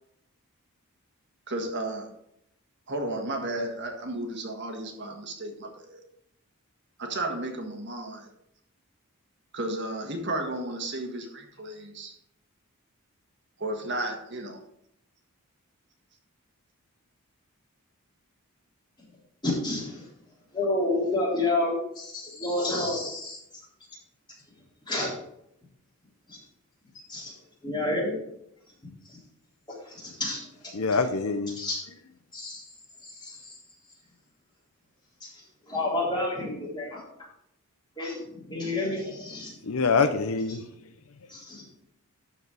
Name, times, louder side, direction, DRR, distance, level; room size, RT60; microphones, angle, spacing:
voice 1, 1.5-2.1 2.9-6.0 7.0-8.3 9.5-12.1 13.6-14.6, right 1 dB, 50° right, 1.6 m, -33 dB
voice 2, 19.4-20.1 20.5-23.4 24.9-25.2 26.3-26.4 27.1-27.3 27.6-28.2 29.1-29.2 29.7-30.7 31.6-31.8 32.3-32.6 33.0-33.6 35.2-37.0 38.0-39.6 41.3-41.6, left 2 dB, 20° left, 3.6 m, -30 dB
voice 3, 30.7-31.6 39.6-40.6, left 4 dB, 70° left, 0.7 m, -25 dB
12.0 x 4.7 x 4.8 m
head